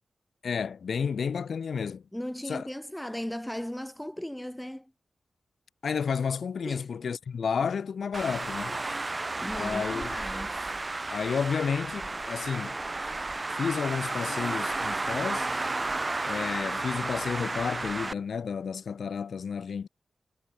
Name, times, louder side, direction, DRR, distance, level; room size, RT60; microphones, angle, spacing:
voice 1, 0.4-2.0 2.5-2.6 5.8-8.8 9.5-10.1 11.1-12.8 13.5-15.5 16.3-19.9, left 6 dB, 70° left, 7.1 m, -31 dB
voice 2, 2.1-4.9 6.6-6.9 8.8-10.6, equal, 5° left, 1.8 m, -37 dB
Traffic noise roadway noise, 8.1-18.1, right 2 dB, 25° right, 1.3 m, -32 dB
wide cardioid pair, 140°, 0 cm